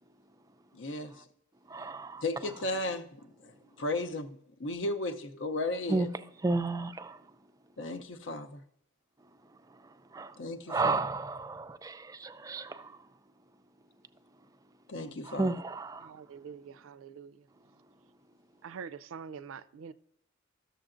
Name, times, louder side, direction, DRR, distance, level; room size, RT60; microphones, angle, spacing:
voice 1, 0.7-1.1 2.2-3.0 3.4-6.1 7.8-8.6 10.4-11.0 14.9-15.5, left 2 dB, 65° left, 0.7 m, -35 dB
voice 2, 1.7-2.2 5.9-6.1 6.4-7.2 9.7-10.4 10.7-13.0 15.2-16.1, right 3 dB, 15° right, 0.3 m, -33 dB
voice 3, 16.0-17.3 18.6-19.9, right 6 dB, 85° right, 0.4 m, -45 dB
12.5 x 6.8 x 2.5 m
head